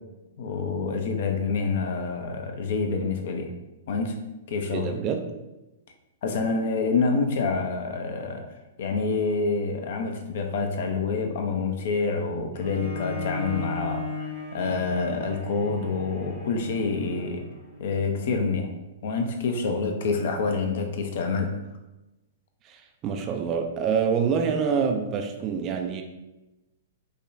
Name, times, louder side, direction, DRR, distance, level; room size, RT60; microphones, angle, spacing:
voice 1, 0.4-3.5 3.9-4.1 4.5-4.9 6.2-8.4 8.8-17.4 17.8-18.7 19.0-21.5, left 4 dB, 50° left, 5 dB, 0.5 m, -27 dB
voice 2, 4.7-5.3 22.6-26.0, right 6 dB, 25° right, 4 dB, 0.3 m, -26 dB
Bowed string instrument, 12.5-17.8, left 2 dB, 80° left, 1.5 m, -36 dB
4.8 x 2.2 x 2.5 m, 1.0 s
figure-of-eight pair, 110°, 0 cm